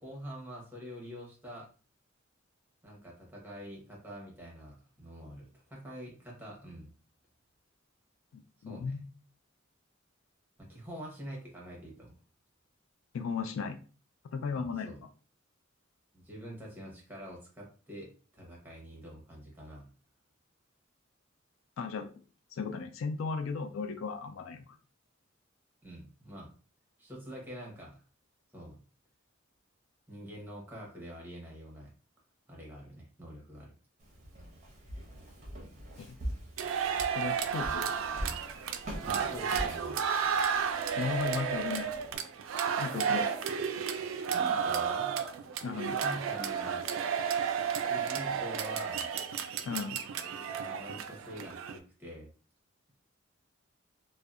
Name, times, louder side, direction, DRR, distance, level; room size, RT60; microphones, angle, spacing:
voice 1, 0.0-1.7 2.8-6.9 8.6-8.9 10.6-12.2 14.5-15.0 16.1-19.9 25.8-26.5 27.0-28.0 28.5-28.8 30.1-31.9 32.5-33.7 39.0-40.0 44.3-45.1 46.0-46.8 47.8-49.1 50.5-52.3, equal, 10° right, -3 dB, 0.9 m, -46 dB
voice 2, 8.6-9.0 13.1-13.8 14.3-14.9 21.8-22.1 22.5-24.8 36.0-36.2 37.2-37.9 40.9-41.9 42.8-43.3 45.6-46.0 49.7-50.0, left 5 dB, 80° left, 8 dB, 0.3 m, -35 dB
Walk footsteps, 34.0-42.2, equal, 35° right, 0.6 m, -43 dB
sound 1, 36.6-51.8, right 7 dB, 75° right, 0.3 m, -32 dB
2.6 x 2.1 x 2.3 m, 0.37 s
head